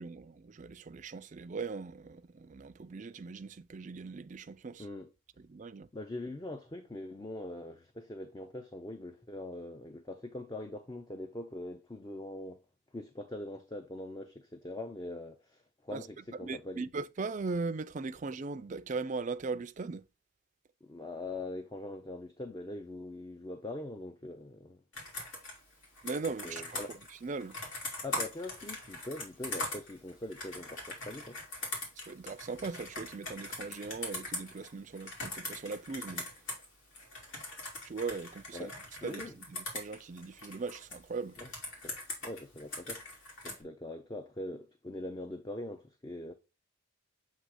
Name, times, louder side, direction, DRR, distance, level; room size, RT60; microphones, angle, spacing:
voice 1, 0.0-4.9 5.4-5.9 15.9-16.1 16.4-20.1 26.0-26.8 27.2-27.6 32.1-36.3 37.8-38.7 39.0-41.4, right 4 dB, 40° right, 0.4 m, -39 dB
voice 2, 4.8-5.1 5.9-12.6 12.9-16.8 20.8-24.8 26.3-26.9 28.0-31.4 38.5-38.7 39.0-39.3 41.4-41.5 41.8-41.9 42.2-43.2 43.4-46.3, left 1 dB, 20° left, 0.5 m, -42 dB
Computer keyboard, 24.9-36.7 36.9-41.0 41.3-43.6, left 2 dB, 75° left, 2.6 m, -41 dB
7.5 x 2.9 x 4.7 m
head